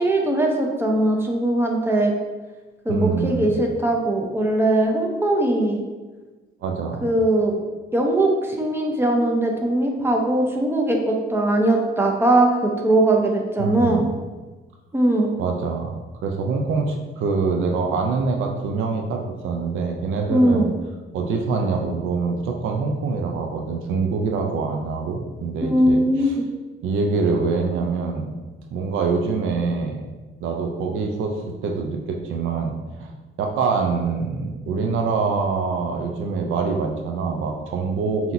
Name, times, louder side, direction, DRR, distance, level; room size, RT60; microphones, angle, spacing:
voice 1, 0.0-2.1 2.8-5.8 7.0-7.6 7.9-14.1 14.9-15.3 20.3-20.7 25.6-26.5, right 1 dB, 10° right, 0 dB, 0.7 m, -20 dB
voice 2, 2.9-3.5 6.6-7.1 13.6-14.0 15.4-15.9 16.2-20.7 21.1-26.3 26.8-28.3 28.7-30.0 30.4-32.7 33.0-33.1 33.4-38.3, right 4 dB, 80° right, 2 dB, 0.5 m, -25 dB
5.6 x 2.8 x 2.6 m, 1.3 s
cardioid pair, 90°, 20 cm